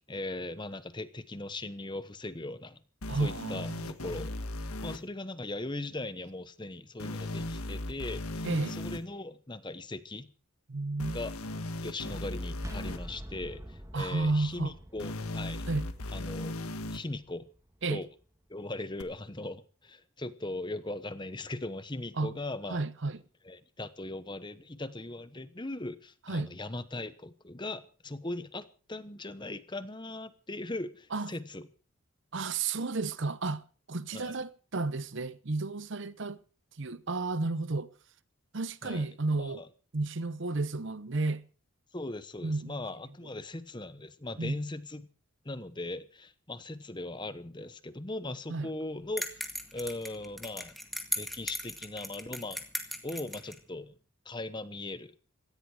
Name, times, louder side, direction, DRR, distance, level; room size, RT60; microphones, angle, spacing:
voice 1, 0.0-2.8 3.1-4.3 4.8-10.3 11.1-11.3 11.8-15.7 16.1-16.6 16.9-17.5 17.9-18.1 18.5-22.8 23.4-31.7 34.1-34.3 38.8-39.1 39.4-39.7 41.9-45.1 45.4-49.3 49.7-50.7 51.1-52.6 53.0-53.9 54.2-55.1, left 2 dB, 20° left, 1.0 m, -39 dB
sound 1, 3.0-5.0 7.0-9.0 11.0-13.0 15.0-17.0 19.0-19.1, left 1 dB, 90° left, 1.7 m, -37 dB
voice 2, 3.1-3.9 8.4-8.8 10.7-11.2 13.9-14.7 15.7-15.9 17.8-18.0 22.2-22.4 22.7-23.2 26.3-26.5 31.1-31.3 32.3-36.4 36.8-37.9 38.5-39.6 39.9-41.5 42.4-42.7 44.4-44.6 48.5-48.7, right 3 dB, 55° right, 0.8 m, -32 dB
sound 2, 12.6-18.3, equal, 15° right, 1.7 m, -47 dB
sound 3, 49.2-53.6, equal, ahead, 1.9 m, -37 dB
17.0 x 15.5 x 4.9 m
head